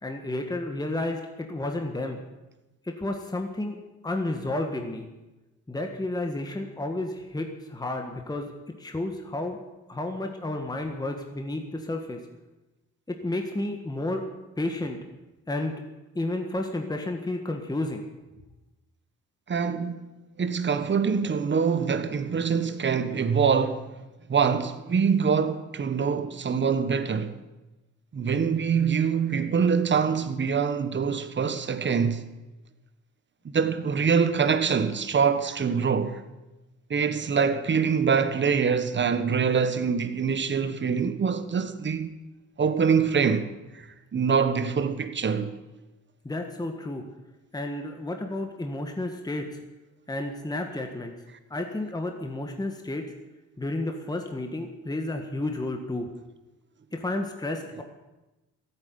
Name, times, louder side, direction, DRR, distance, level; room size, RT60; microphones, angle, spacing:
voice 1, 0.0-2.2 2.8-3.8 4.0-5.0 5.7-8.5 8.8-9.6 9.9-12.2 13.1-14.2 14.6-15.0 15.5-15.7 16.1-18.0 46.2-47.0 47.5-49.5 50.1-51.1 51.5-53.0 53.6-56.1 56.9-57.8, left 2 dB, 15° left, 1.6 m, -31 dB
voice 2, 19.5-20.1 20.4-23.9 24.3-27.4 28.1-32.2 33.5-36.2 36.9-42.1 42.6-43.5 43.7-43.9 44.1-45.5, right 6 dB, 40° right, 1.4 m, -24 dB
14.0 x 9.0 x 9.6 m
cardioid pair, 90°, 30 cm